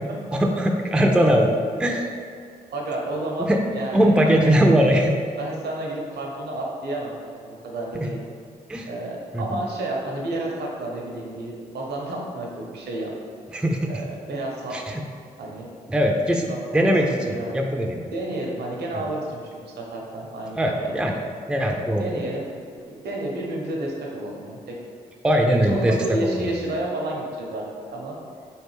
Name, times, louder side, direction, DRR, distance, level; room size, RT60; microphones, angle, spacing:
voice 1, 0.3-2.1 3.4-3.6 3.9-5.1 8.7-8.9 9.3-9.6 13.5-13.9 14.7-15.0 15.9-18.1 20.6-21.2 21.5-22.2 25.2-26.6, equal, 5° right, 2 dB, 0.4 m, -21 dB
voice 2, 2.7-4.3 5.4-8.2 8.8-13.1 13.9-14.8 15.4-15.7 16.5-17.5 18.1-20.9 21.6-22.5 22.8-24.8 25.6-27.6 27.9-28.2, right 1 dB, 70° right, -1 dB, 0.8 m, -31 dB
3.9 x 3.3 x 3.2 m, 2.3 s
supercardioid pair, 45°, 18 cm